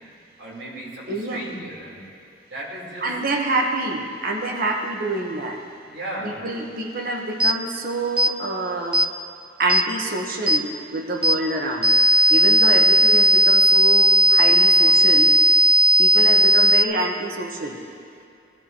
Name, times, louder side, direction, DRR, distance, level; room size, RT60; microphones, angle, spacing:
voice 1, 0.4-2.0 2.5-3.1 5.9-6.4, right 1 dB, 85° right, -5 dB, 3.9 m, -35 dB
voice 2, 1.1-1.4 3.0-5.6 6.2-9.0 9.6-11.9 12.3-15.3 16.0-17.8, right 2 dB, 50° right, 1 dB, 1.1 m, -27 dB
sound 1, 7.4-7.6 8.2-8.3 8.9-9.1 9.7-9.9 10.5-10.6 11.2-11.4 11.8-16.8, equal, 5° right, 0.6 m, -16 dB
20.0 x 16.0 x 3.0 m, 2.4 s
head